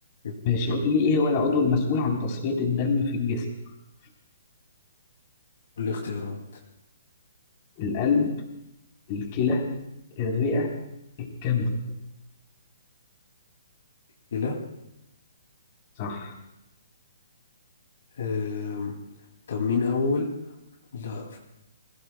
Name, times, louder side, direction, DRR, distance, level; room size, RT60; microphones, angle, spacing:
voice 1, 0.4-3.5 7.8-8.3 9.1-9.7 10.2-10.7 11.2-11.8 16.0-16.3, left 4 dB, 35° left, 0 dB, 3.7 m, -25 dB
voice 2, 5.8-6.6 14.3-14.6 18.2-18.9 19.5-20.3 20.9-21.4, left 4 dB, 65° left, 0 dB, 2.6 m, -28 dB
27.0 x 16.0 x 2.3 m, 0.87 s
hypercardioid pair, 155°, 0 cm